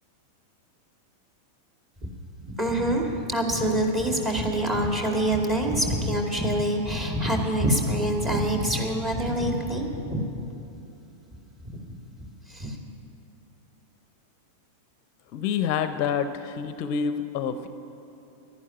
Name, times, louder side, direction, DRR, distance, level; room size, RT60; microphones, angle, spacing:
voice 1, 2.6-10.2 12.5-12.8, right 1 dB, 20° right, 1 dB, 2.3 m, -25 dB
voice 2, 15.3-17.7, left 7 dB, 45° left, 11 dB, 0.6 m, -27 dB
11.5 x 11.0 x 10.0 m, 2.8 s
figure-of-eight pair, 90°, 0 cm